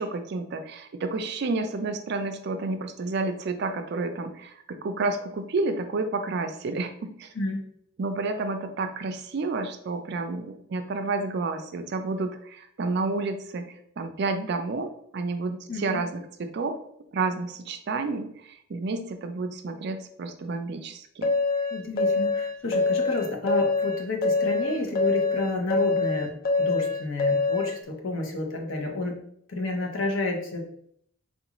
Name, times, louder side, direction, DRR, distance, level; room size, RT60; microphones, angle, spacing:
voice 1, 0.0-7.3 8.0-13.6 14.0-16.8 17.1-21.3, right 3 dB, 55° right, 7 dB, 0.4 m, -30 dB
voice 2, 15.7-16.0 21.7-29.2 29.5-30.7, left 2 dB, 70° left, 1 dB, 0.8 m, -30 dB
sound 1, 21.2-27.8, left 3 dB, 45° left, 0.4 m, -25 dB
3.8 x 2.4 x 2.9 m, 0.68 s
head